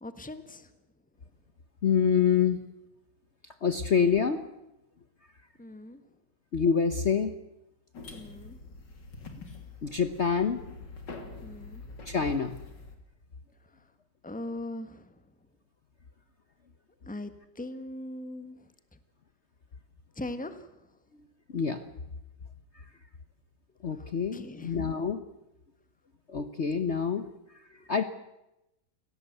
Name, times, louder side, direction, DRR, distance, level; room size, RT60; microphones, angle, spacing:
voice 1, 0.0-0.7 5.6-6.0 8.1-8.6 11.4-11.8 14.2-15.2 17.1-18.7 20.2-20.7 24.0-24.8 26.4-26.8 27.7-27.9, left 1 dB, 5° left, 10 dB, 1.3 m, -41 dB
voice 2, 1.8-2.6 3.6-4.4 6.5-7.3 9.8-10.6 12.1-12.6 21.5-21.8 23.8-25.2 26.3-27.3 27.9-28.0, left 6 dB, 45° left, 9 dB, 1.2 m, -26 dB
sound 1, 7.9-13.0, left 3 dB, 85° left, 3.5 m, -45 dB
29.5 x 17.5 x 8.1 m, 0.91 s
omnidirectional pair, 1.9 m